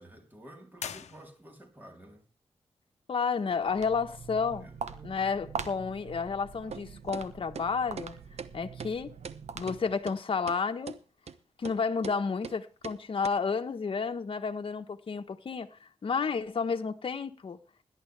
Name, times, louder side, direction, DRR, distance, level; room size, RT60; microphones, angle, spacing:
voice 1, 0.0-2.3 4.4-4.8, right 1 dB, 15° right, 4.1 m, -51 dB
sound 1, 0.7-1.8, left 8 dB, 90° left, 0.9 m, -42 dB
voice 2, 3.1-4.7 5.0-8.1 8.5-9.1 9.5-11.0 11.6-15.7 16.0-17.6, left 5 dB, 50° left, 1.3 m, -31 dB
Walk footsteps, 3.5-10.0, right 6 dB, 85° right, 1.3 m, -43 dB
sound 2, 6.7-6.8 7.1-7.3 7.6-7.7 8.0-8.1 8.4-8.5 8.8-8.9 9.2-9.4 9.7-9.8 10.1-10.2 10.5-10.6 10.9-11.0 11.3-11.4 11.6-11.8 12.0-12.2 12.4-12.6 12.8-13.0 13.2-13.3, right 6 dB, 70° right, 1.0 m, -41 dB
17.5 x 11.0 x 3.5 m
wide cardioid pair, 90°, 11 cm